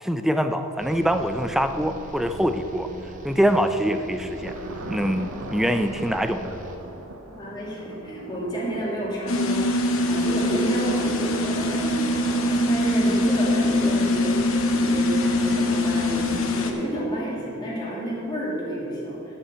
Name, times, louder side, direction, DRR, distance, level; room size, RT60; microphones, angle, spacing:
voice 1, 0.0-2.9 3.2-4.6 4.9-6.6, equal, ahead, 8 dB, 0.4 m, -24 dB
sound 1, 0.8-7.1, right 1 dB, 35° right, 0.9 m, -41 dB
Thunder, 4.3-16.4, right 1 dB, 85° right, 1.0 m, -41 dB
voice 2, 7.3-19.4, right 1 dB, 20° left, -6 dB, 2.3 m, -30 dB
sound 2, 9.3-16.7, left 1 dB, 65° left, 1.0 m, -23 dB
10.0 x 5.4 x 7.8 m, 2.9 s
head